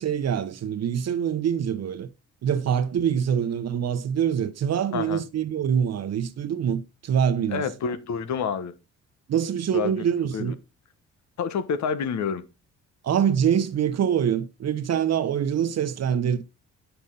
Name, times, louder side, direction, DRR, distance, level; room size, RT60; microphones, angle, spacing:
voice 1, 0.0-2.1 2.4-7.6 9.3-10.5 13.0-16.4, right 8 dB, 60° right, 1.0 m, -25 dB
voice 2, 4.9-5.2 7.5-8.7 9.7-10.5 11.4-12.4, left 6 dB, 65° left, 1.4 m, -28 dB
9.1 x 7.0 x 3.9 m
cardioid pair, 90°, 30 cm